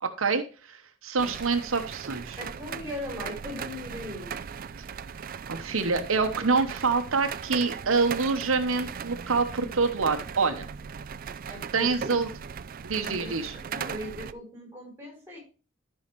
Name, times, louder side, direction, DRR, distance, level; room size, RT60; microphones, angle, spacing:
voice 1, 0.0-0.4 0.7-2.4 5.5-10.7 11.7-12.3 12.8-13.5, right 4 dB, 85° right, 6 dB, 1.0 m, -26 dB
sound 1, 1.2-14.3, right 7 dB, 45° right, 0.4 m, -38 dB
voice 2, 2.4-4.4 6.4-6.7 11.4-12.3 13.0-13.3 13.6-15.4, left 1 dB, 10° right, 0 dB, 4.2 m, -39 dB
13.0 x 5.5 x 3.1 m, 0.35 s
head